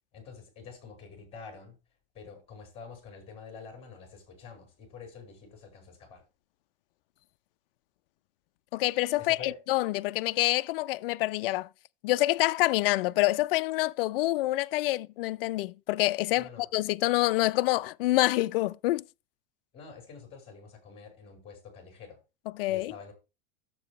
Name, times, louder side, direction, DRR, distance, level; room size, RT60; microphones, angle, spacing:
voice 1, 0.1-1.8 2.1-6.2 9.2-9.6 16.4-16.7 19.7-22.2 22.7-23.1, left 5 dB, 20° left, 4.7 m, -47 dB
voice 2, 8.7-9.4 9.7-11.7 12.0-19.0 22.5-22.9, left 18 dB, 70° left, 0.5 m, -27 dB
11.0 x 7.6 x 3.0 m
supercardioid pair, 155°, 29 cm